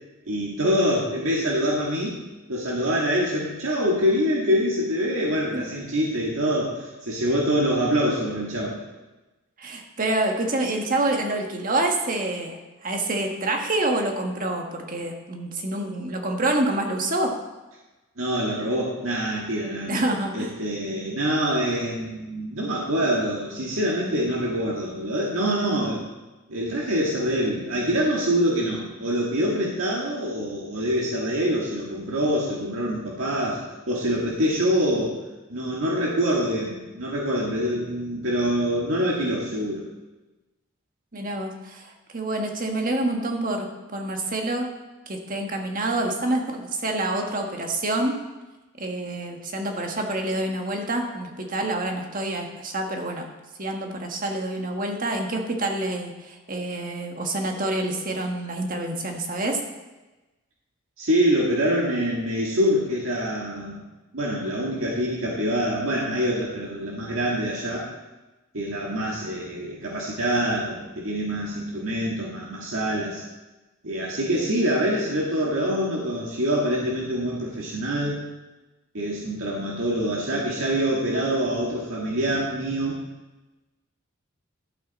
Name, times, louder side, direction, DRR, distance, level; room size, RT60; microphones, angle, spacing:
voice 1, 0.3-2.2 2.5-8.8 18.2-20.0 20.3-26.0 26.5-33.6 33.9-35.2 35.5-39.8 61.0-63.8 64.1-67.9 68.5-73.2 73.8-78.2 78.9-83.0, equal, 75° right, -4 dB, 1.8 m, -25 dB
voice 2, 9.6-17.3 19.9-20.5 41.1-44.7 45.1-48.2 48.8-53.3 53.6-59.6, right 2 dB, 40° right, 2 dB, 1.4 m, -27 dB
12.0 x 8.7 x 4.1 m, 1.1 s
head